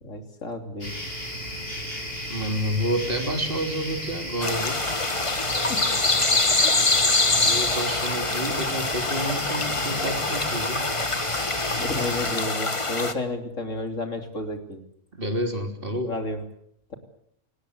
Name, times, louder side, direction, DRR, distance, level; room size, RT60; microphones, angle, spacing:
voice 1, 0.0-0.9 5.5-5.8 6.6-6.8 11.8-14.8 16.0-16.4, left 2 dB, 75° left, 6 dB, 3.5 m, -32 dB
sound 1, 0.8-12.4, equal, 50° left, 7.5 m, -34 dB
voice 2, 2.3-4.8 7.3-10.9 15.1-16.1, equal, 45° right, 4 dB, 3.4 m, -29 dB
sound 2, 4.4-13.1, left 3 dB, 25° left, 1.5 m, -24 dB
27.0 x 18.5 x 8.1 m, 0.71 s
omnidirectional pair, 1.3 m